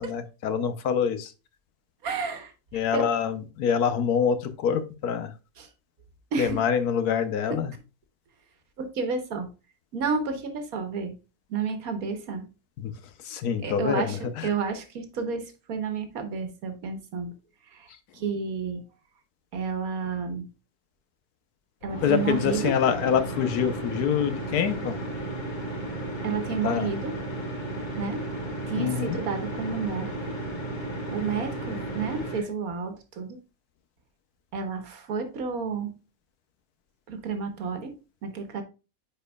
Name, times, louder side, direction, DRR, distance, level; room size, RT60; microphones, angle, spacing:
voice 1, 0.0-1.3 2.7-5.3 6.4-7.7 12.8-12.9 13.2-14.5 17.9-18.0 22.0-25.0 26.6-26.9 28.7-29.2, left 7 dB, 75° left, 1.3 m, -26 dB
voice 2, 2.0-2.5 2.9-3.1 5.6-5.7 6.3-6.6 7.5-7.6 8.8-9.5 9.9-11.1 11.5-12.5 13.6-17.3 17.7-17.9 18.1-18.8 19.5-20.4 21.8-22.7 26.2-27.1 28.0-28.2 28.7-30.1 31.1-33.4 34.5-35.9 37.1-37.9 38.2-38.6, right 5 dB, 65° right, 1.6 m, -31 dB
sound 1, 21.8-32.5, right 1 dB, 30° left, 1.5 m, -34 dB
9.6 x 4.5 x 2.3 m
omnidirectional pair, 1.7 m